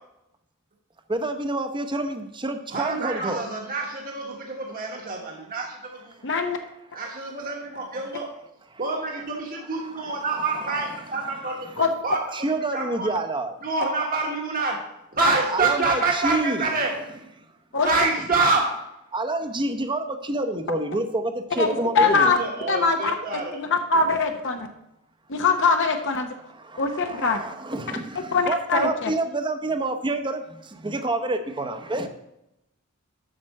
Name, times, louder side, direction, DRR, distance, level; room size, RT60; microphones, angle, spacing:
voice 1, 1.1-3.4 12.3-13.5 15.5-16.7 19.1-22.3 26.5-30.4 30.8-32.1, right 2 dB, 25° right, 7 dB, 0.8 m, -28 dB
voice 2, 2.7-6.2 6.9-8.2 8.8-11.5 12.0-12.2 12.7-13.1 13.6-14.8 15.1-16.9 17.8-18.6 21.5-23.6, right 3 dB, 45° right, 0 dB, 1.3 m, -27 dB
voice 3, 6.2-6.6 11.8-11.9 17.7-17.9 21.6-22.4 22.7-24.7 25.3-26.3 26.8-27.4 28.2-29.1, left 4 dB, 60° left, 5 dB, 0.8 m, -22 dB
7.5 x 5.9 x 6.5 m, 0.86 s
head